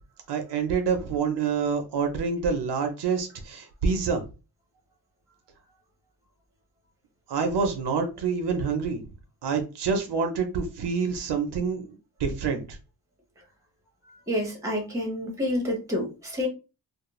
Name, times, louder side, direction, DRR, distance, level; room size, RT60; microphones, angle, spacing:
voice 1, 0.3-4.2 7.3-9.0 9.4-11.8 12.2-12.6, right 5 dB, 75° right, 5 dB, 0.6 m, -27 dB
voice 2, 14.3-16.5, left 1 dB, 5° right, 0 dB, 0.8 m, -28 dB
2.4 x 2.0 x 3.0 m, 0.30 s
wide cardioid pair, 150°, 42 cm